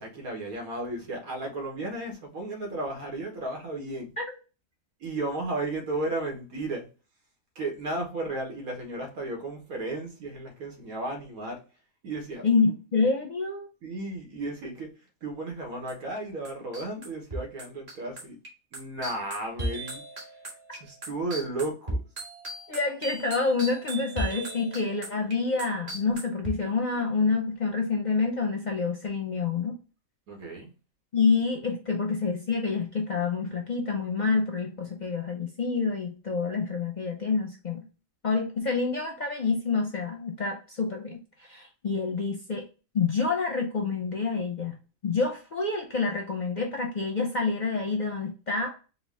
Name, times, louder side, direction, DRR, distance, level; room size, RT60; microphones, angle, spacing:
voice 1, 0.0-4.1 5.0-6.9 7.5-11.6 12.0-12.5 13.8-14.9 15.2-18.4 18.7-20.0 20.7-22.0 30.3-30.7, right 2 dB, 85° right, 1.7 m, -34 dB
voice 2, 12.4-13.7 22.7-29.7 31.1-37.8 38.2-42.6 42.9-44.8 45.0-48.8, left 4 dB, 45° left, 0.6 m, -27 dB
sound 1, 15.9-16.2 16.4-26.5, right 1 dB, 35° right, 1.6 m, -37 dB
4.6 x 2.3 x 3.4 m
omnidirectional pair, 1.5 m